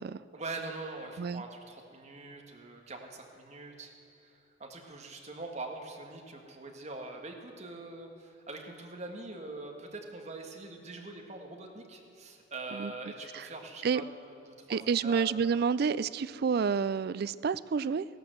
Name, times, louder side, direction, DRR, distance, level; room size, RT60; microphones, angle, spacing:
voice 1, 0.3-3.9 4.2-15.6, right 2 dB, 35° right, 2 dB, 1.7 m, -43 dB
voice 2, 14.7-18.1, right 6 dB, 50° right, 17 dB, 0.3 m, -29 dB
15.5 x 12.0 x 7.8 m, 2.8 s
head